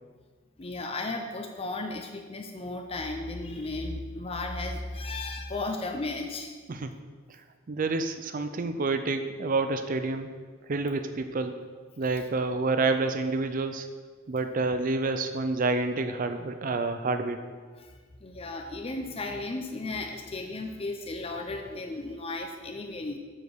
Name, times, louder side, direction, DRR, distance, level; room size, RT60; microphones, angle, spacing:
voice 1, 0.6-6.5 17.8-23.2, left 2 dB, 30° left, 4 dB, 0.5 m, -35 dB
voice 2, 7.7-10.3 10.7-11.5 12.0-13.9 14.3-17.4, right 3 dB, 40° right, 8 dB, 0.5 m, -28 dB
7.4 x 5.1 x 6.2 m, 1.5 s
head